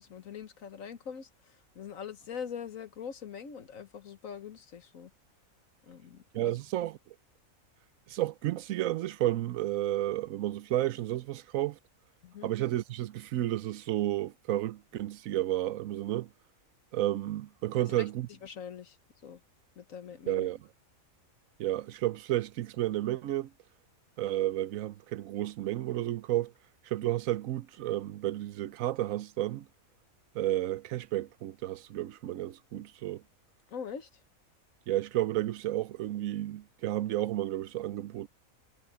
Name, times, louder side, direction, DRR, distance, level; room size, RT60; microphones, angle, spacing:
voice 1, 0.0-5.1 5.8-6.6 12.2-12.5 17.7-19.0 19.2-19.4 19.7-20.5 33.7-34.2, left 7 dB, 70° left, 1.5 m, -43 dB
voice 2, 6.3-7.0 8.1-11.8 12.4-16.3 16.9-18.3 20.3-20.6 21.6-23.5 24.2-26.5 26.9-29.7 30.3-33.2 34.9-38.3, right 14 dB, 75° right, 1.0 m, -31 dB
omnidirectional pair, 1.5 m